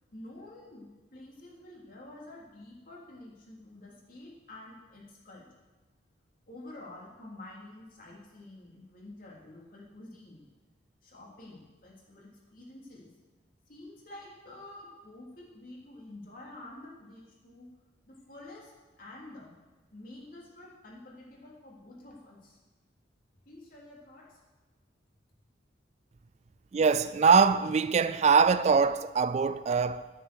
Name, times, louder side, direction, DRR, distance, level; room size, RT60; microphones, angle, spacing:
voice 1, 0.1-5.5 6.5-10.4 11.0-13.1 13.7-17.7 18.1-19.5 19.9-22.6 23.5-24.4, left 1 dB, 50° left, 3.4 m, -49 dB
voice 2, 26.7-30.1, right 5 dB, 35° right, 0.3 m, -23 dB
11.0 x 9.6 x 6.9 m
head